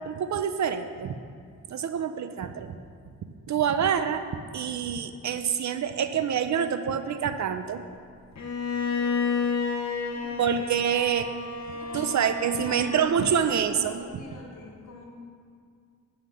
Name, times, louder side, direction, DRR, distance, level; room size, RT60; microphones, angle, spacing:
voice 1, 0.1-1.1 1.7-2.7 3.5-4.2 4.5-7.8 10.4-11.3 11.9-14.0, right 8 dB, 60° right, 10 dB, 0.6 m, -26 dB
Bowed string instrument, 8.4-13.4, left 5 dB, 55° left, 1.2 m, -31 dB
voice 2, 10.1-11.1 11.7-15.1, left 2 dB, 75° left, -1 dB, 2.3 m, -46 dB
9.2 x 5.7 x 8.0 m, 2.2 s
wide cardioid pair, 115°, 32 cm